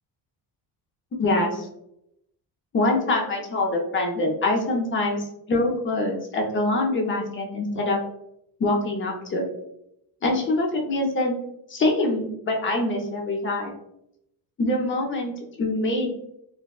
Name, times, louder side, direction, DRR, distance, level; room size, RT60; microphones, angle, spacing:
voice 1, 1.2-1.7 2.7-8.0 8.6-9.5 10.2-11.3 11.7-13.7 14.6-16.1, left 2 dB, 25° left, 0 dB, 0.6 m, -24 dB
2.6 x 2.1 x 2.3 m, 0.78 s
cardioid pair, 105°, 45 cm